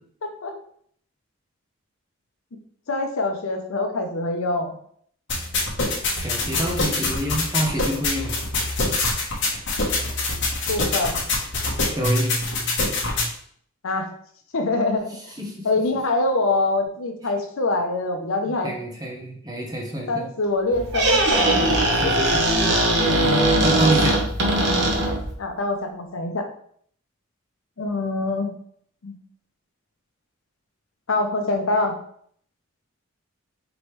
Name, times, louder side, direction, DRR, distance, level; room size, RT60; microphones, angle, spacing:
voice 1, 0.2-0.5 2.9-4.7 10.7-11.2 13.8-14.1 14.5-15.1 15.6-18.7 20.1-21.5 22.0-22.3 25.4-26.4 27.8-28.5 29.0-29.1 31.1-32.0, left 2 dB, 75° left, 4 dB, 0.6 m, -24 dB
sound 1, 5.3-13.3, left 2 dB, 55° left, 1.1 m, -24 dB
voice 2, 6.1-8.4 11.9-12.3 15.4-15.7 18.5-20.2 22.0-22.3 23.1-24.2, equal, 20° right, 0 dB, 0.8 m, -27 dB
Squeak, 20.7-25.3, right 1 dB, 55° right, 0.9 m, -20 dB
4.9 x 3.0 x 3.2 m, 0.63 s
head